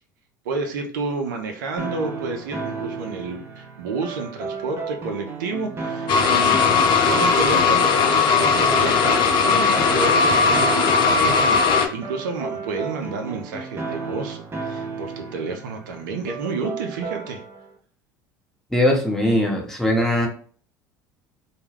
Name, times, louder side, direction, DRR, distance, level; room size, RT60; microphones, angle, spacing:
voice 1, 0.4-9.2 9.4-17.4, right 4 dB, 80° right, 4 dB, 0.5 m, -30 dB
sound 1, 1.8-17.7, right 4 dB, 25° right, 0.6 m, -34 dB
sound 2, 6.1-11.9, left 5 dB, 50° left, 0.5 m, -18 dB
voice 2, 18.7-20.3, left 1 dB, 5° left, 0 dB, 0.9 m, -20 dB
2.2 x 2.1 x 3.2 m, 0.43 s
hypercardioid pair, 75°, 10 cm